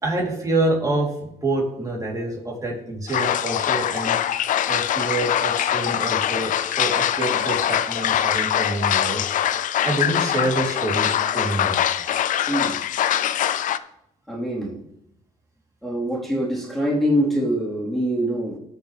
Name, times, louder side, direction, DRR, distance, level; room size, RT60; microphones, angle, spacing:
voice 1, 0.0-4.2 4.7-9.3 9.8-11.8, right 2 dB, 25° right, -1 dB, 3.3 m, -26 dB
sound 1, 3.1-13.8, left 10 dB, 70° left, 0.5 m, -23 dB
voice 2, 12.5-12.8 13.7-13.8 14.3-14.8 15.8-18.6, equal, ahead, -6 dB, 4.0 m, -24 dB
19.5 x 6.7 x 3.4 m, 0.78 s
cardioid pair, 100°, 14 cm